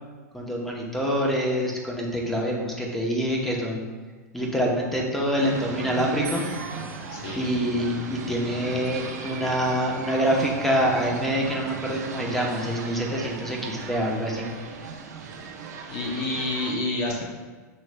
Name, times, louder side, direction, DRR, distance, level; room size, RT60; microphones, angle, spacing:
voice 1, 0.3-3.9 4.3-6.5 7.4-14.5, equal, 5° left, -2 dB, 0.8 m, -26 dB
sound 1, 5.4-16.7, right 4 dB, 75° right, 0.6 m, -37 dB
sound 2, 6.2-9.5, right 3 dB, 45° right, 1.2 m, -46 dB
voice 2, 7.1-7.6 15.9-17.2, left 2 dB, 55° left, -1 dB, 0.7 m, -29 dB
6.3 x 3.0 x 2.2 m, 1.4 s
hypercardioid pair, 110°, 9 cm